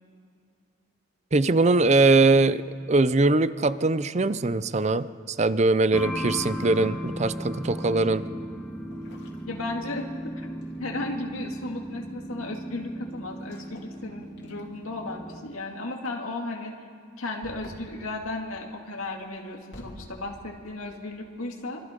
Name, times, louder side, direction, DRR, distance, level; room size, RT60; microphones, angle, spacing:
voice 1, 1.3-8.3, right 2 dB, 30° right, 15 dB, 0.5 m, -22 dB
sound 1, 1.5-2.2 3.4-3.8 5.8-7.5 8.9-10.3 10.6-10.9 13.4-14.0 14.4-14.9 17.4-18.0 19.2-20.1, left 1 dB, 55° left, 3.0 m, -48 dB
sound 2, 5.9-15.4, equal, 5° left, 1.6 m, -36 dB
voice 2, 9.4-10.1 10.4-10.5 10.8-16.7 17.2-21.8, left 2 dB, 90° left, 1 dB, 2.3 m, -35 dB
26.0 x 25.0 x 5.3 m, 2.4 s
head